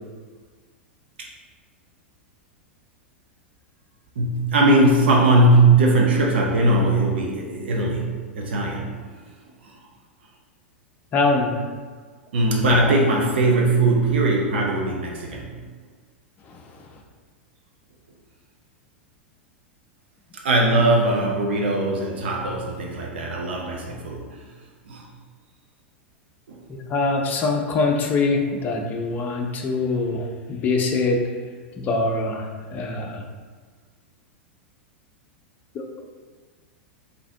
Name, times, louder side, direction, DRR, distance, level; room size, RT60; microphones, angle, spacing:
voice 1, 4.2-9.0 9.6-9.8 12.3-15.5 20.4-24.4 24.9-25.1 26.5-26.6, right 2 dB, 60° right, -1 dB, 0.6 m, -20 dB
voice 2, 11.1-11.6 16.5-17.0 26.7-31.2 31.8-33.2 35.7-35.8, left 3 dB, 30° left, 2 dB, 0.6 m, -24 dB
3.9 x 3.6 x 2.8 m, 1.5 s
figure-of-eight pair, 90°, 6 cm